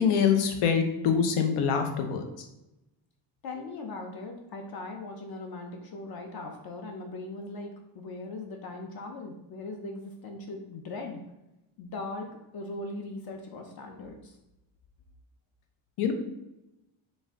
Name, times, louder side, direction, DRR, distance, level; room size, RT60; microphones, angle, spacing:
voice 1, 0.0-2.5 16.0-16.1, left 7 dB, 90° left, 5 dB, 0.8 m, -25 dB
voice 2, 3.4-7.7 7.9-11.2 11.8-12.3 12.5-14.4, left 2 dB, 50° left, 3 dB, 0.5 m, -39 dB
4.1 x 2.5 x 3.5 m, 0.93 s
cardioid pair, 145°, 48 cm